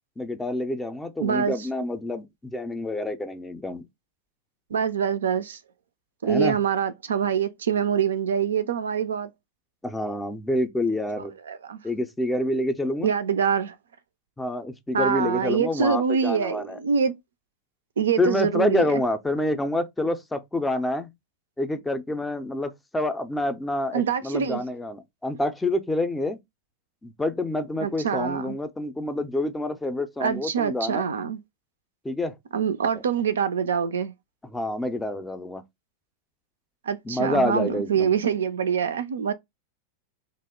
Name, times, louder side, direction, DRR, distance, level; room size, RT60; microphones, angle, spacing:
voice 1, 0.2-3.8 6.2-6.6 9.8-11.3 11.8-13.1 14.4-16.8 18.2-21.1 21.6-26.4 27.0-31.1 32.0-32.4 34.4-35.6 37.1-38.1, left 1 dB, 10° left, 0.4 m, -27 dB
voice 2, 1.2-1.5 4.7-5.6 6.2-9.3 11.5-11.8 13.0-13.8 14.9-17.1 18.0-18.9 23.9-24.6 27.8-28.6 30.2-31.4 32.5-34.1 36.8-39.3, right 7 dB, 65° right, 0.3 m, -25 dB
2.8 x 2.1 x 3.4 m
figure-of-eight pair, 90°, 0 cm